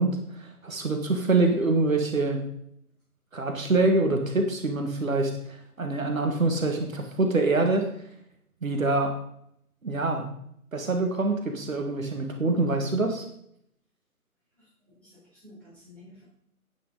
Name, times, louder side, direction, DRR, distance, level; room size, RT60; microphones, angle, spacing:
voice 1, 0.0-2.4 3.3-7.9 8.6-9.2 9.8-10.3 10.7-13.2, right 2 dB, 60° right, 4 dB, 1.7 m, -25 dB
voice 2, 14.6-16.2, left 1 dB, 5° left, -12 dB, 4.3 m, -52 dB
9.6 x 9.2 x 4.0 m, 0.71 s
figure-of-eight pair, 150°, 45 cm